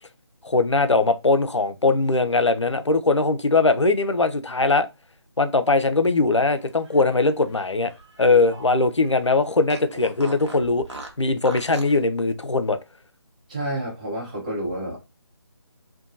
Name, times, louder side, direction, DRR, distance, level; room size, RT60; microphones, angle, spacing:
voice 1, 0.4-4.9 5.4-7.9 8.2-10.8 11.2-12.8, left 3 dB, 85° left, 0.5 m, -20 dB
Fart, 6.7-8.7 9.0-9.1 9.7-12.0, right 2 dB, 80° right, 0.9 m, -40 dB
voice 2, 13.5-15.0, right 1 dB, 15° right, 0.8 m, -30 dB
2.7 x 2.2 x 2.5 m
figure-of-eight pair, 155°, 15 cm